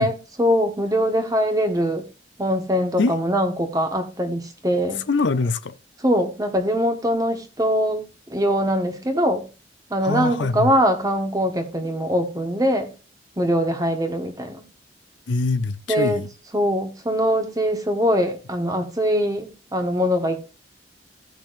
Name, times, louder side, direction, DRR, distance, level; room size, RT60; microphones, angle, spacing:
voice 1, 0.0-2.0 2.4-5.0 6.0-8.0 8.3-9.5 9.9-12.9 13.4-14.6 15.9-16.2 16.5-20.4, equal, 20° right, 1.3 m, -22 dB
voice 2, 5.0-5.7 10.0-10.7 15.3-16.3, left 3 dB, 80° left, 0.7 m, -23 dB
16.5 x 6.0 x 2.5 m
head